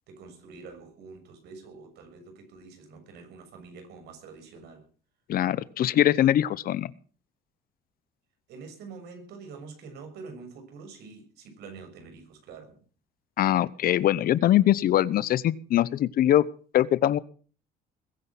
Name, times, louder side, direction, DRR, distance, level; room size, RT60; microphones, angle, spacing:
voice 1, 0.1-4.8 8.5-12.8, right 4 dB, 75° right, 6 dB, 6.5 m, -46 dB
voice 2, 5.3-6.9 13.4-16.5 16.7-17.2, left 12 dB, 60° left, 19 dB, 0.9 m, -22 dB
21.5 x 9.7 x 6.1 m, 0.41 s
cardioid pair, 110°, 17 cm